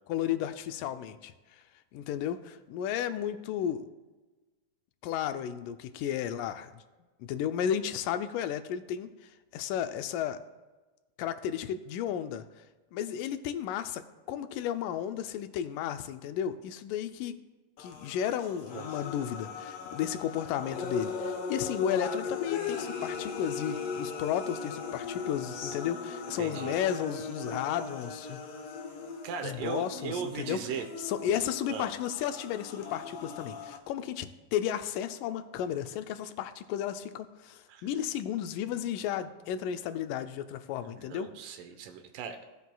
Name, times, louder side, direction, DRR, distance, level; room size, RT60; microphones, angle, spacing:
voice 1, 0.1-1.6 1.9-3.9 5.0-6.8 7.2-10.4 11.2-12.5 12.9-17.4 17.8-28.4 29.4-30.6 31.0-41.3, left 9 dB, 90° left, 9 dB, 2.2 m, -33 dB
sound 1, 17.8-33.8, left 5 dB, 65° left, 1.6 m, -38 dB
voice 2, 26.4-26.8 29.2-30.9 31.7-31.9 37.7-37.9 40.8-42.4, right 7 dB, 85° right, 6 dB, 2.5 m, -38 dB
16.0 x 8.2 x 2.3 m, 1.2 s
omnidirectional pair, 3.7 m